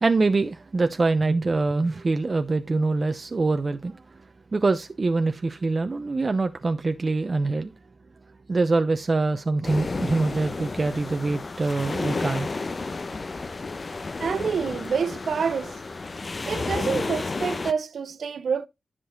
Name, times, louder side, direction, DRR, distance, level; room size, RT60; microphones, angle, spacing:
voice 1, 0.0-4.2 4.5-7.7 8.5-12.6, right 3 dB, 45° right, 0.8 m, -24 dB
sound 1, 9.6-17.7, left 3 dB, 45° left, 0.8 m, -32 dB
voice 2, 14.2-15.8 16.5-18.7, right 6 dB, 75° right, 0.6 m, -27 dB
10.5 x 6.2 x 3.9 m
cardioid pair, 50°, 0 cm